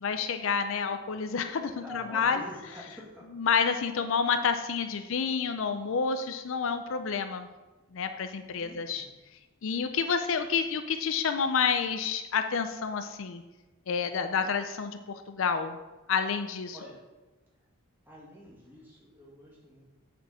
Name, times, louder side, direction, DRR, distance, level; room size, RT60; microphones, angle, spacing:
voice 1, 0.0-2.4 3.3-7.5 7.9-9.1 9.6-13.4 13.9-15.8 16.1-16.8, left 6 dB, 60° left, 8 dB, 0.4 m, -29 dB
voice 2, 1.7-3.3 8.6-9.1 16.7-17.0 18.1-19.8, left 1 dB, 10° right, -5 dB, 2.1 m, -46 dB
8.6 x 4.4 x 5.6 m, 1.2 s
head